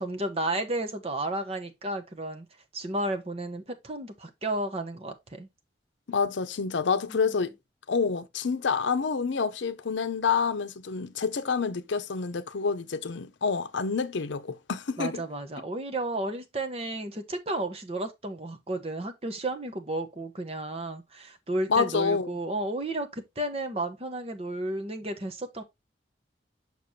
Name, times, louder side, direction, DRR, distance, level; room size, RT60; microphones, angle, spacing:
voice 1, 0.0-2.5 2.7-5.5 7.1-7.2 15.0-25.6, right 1 dB, 30° right, 1.0 m, -32 dB
voice 2, 6.1-7.5 7.9-15.2 21.7-22.3, left 5 dB, 85° left, 0.6 m, -28 dB
6.8 x 5.9 x 2.7 m
head